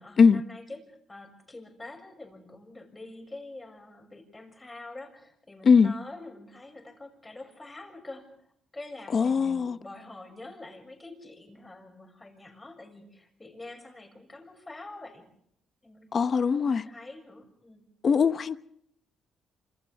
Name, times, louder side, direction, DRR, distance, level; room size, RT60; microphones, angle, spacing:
voice 1, 0.0-8.3 8.7-15.3 15.8-17.8, left 2 dB, 20° left, 6.9 m, -46 dB
voice 2, 9.1-9.8 16.1-16.9 18.0-18.6, left 5 dB, 45° left, 1.0 m, -21 dB
27.5 x 27.0 x 3.6 m
cardioid pair, 90°, 0 cm